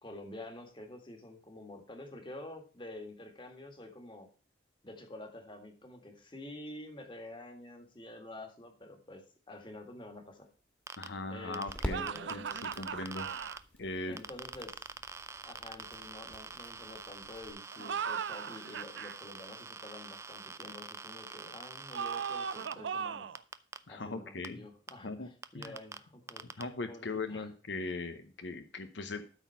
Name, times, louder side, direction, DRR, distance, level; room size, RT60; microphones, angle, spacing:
voice 1, 0.0-4.3 4.8-10.5 11.3-12.7 14.1-14.9 15.4-23.3 23.9-27.5, left 1 dB, 25° left, 3 dB, 1.9 m, -48 dB
sound 1, 9.6-17.5, equal, 10° left, 1.6 m, -46 dB
sound 2, 10.9-11.1 11.5-13.6 14.2-22.7 23.3-23.8 24.4-24.5 24.9-25.0 25.4-26.0 26.3-26.6, right 4 dB, 15° right, 0.4 m, -45 dB
voice 2, 11.0-13.3 13.8-14.2 23.9-24.6 25.0-25.3 25.5-25.7 26.6-29.2, left 3 dB, 80° left, 8 dB, 0.8 m, -39 dB
sound 3, 11.9-13.6 17.7-19.1 21.9-23.4, right 7 dB, 80° right, 0.5 m, -37 dB
12.5 x 4.2 x 5.7 m, 0.39 s
head